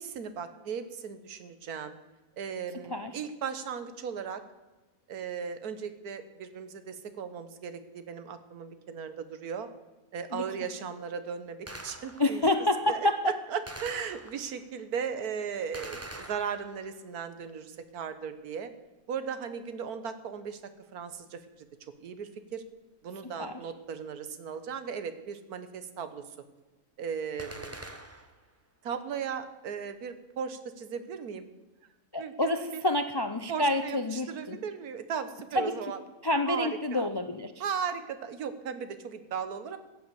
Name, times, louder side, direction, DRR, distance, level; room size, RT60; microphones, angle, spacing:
voice 1, 0.0-2.0 2.4-4.4 5.1-9.7 10.1-12.4 12.9-18.7 19.1-20.6 20.9-21.4 22.0-22.6 23.0-26.2 27.0-27.8 28.8-31.4 32.2-32.8 33.5-36.0 36.5-37.1 37.6-39.8, right 7 dB, 90° right, 11 dB, 1.6 m, -37 dB
Gunshot gunfire, 11.7-12.5 13.7-14.6 15.7-17.0 27.4-28.5, right 1 dB, 10° right, 0.8 m, -44 dB
voice 2, 12.2-13.2 23.2-23.5 32.1-34.6 35.5-35.7 36.2-37.5, left 1 dB, 35° left, 8 dB, 0.3 m, -28 dB
15.0 x 8.2 x 6.9 m, 1.2 s
omnidirectional pair, 1.5 m